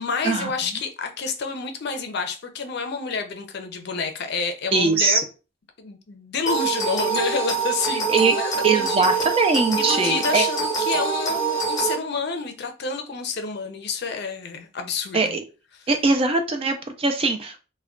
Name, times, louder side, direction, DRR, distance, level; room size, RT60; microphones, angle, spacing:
voice 1, 0.0-5.2 5.8-8.9 9.2-9.3 9.8-15.3, left 5 dB, 55° left, 0.5 m, -29 dB
voice 2, 4.7-5.2 8.1-8.4 8.6-10.4 15.1-15.4 15.9-17.6, right 3 dB, 30° right, 0.3 m, -21 dB
sound 1, 6.5-11.9, right 5 dB, 20° left, 0.7 m, -25 dB
2.3 x 2.1 x 3.6 m
head